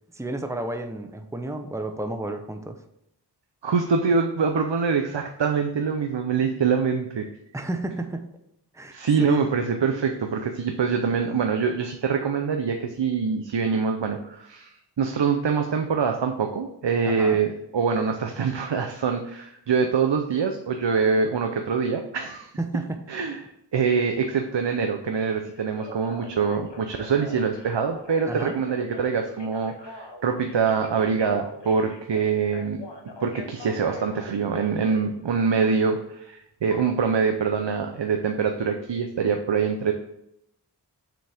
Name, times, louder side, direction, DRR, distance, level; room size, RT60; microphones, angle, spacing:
voice 1, 0.1-2.8 7.5-8.2 8.7-9.5 17.1-17.4 22.7-22.8 28.3-28.6, right 1 dB, 5° right, 5 dB, 0.8 m, -31 dB
voice 2, 3.6-7.3 8.9-14.7 15.0-22.5 23.1-32.8 33.2-39.9, right 5 dB, 85° right, 5 dB, 0.8 m, -24 dB
Telephone, 25.5-35.1 36.7-36.8, left 3 dB, 75° left, 1.3 m, -42 dB
7.0 x 6.1 x 3.5 m, 0.79 s
wide cardioid pair, 70°, 42 cm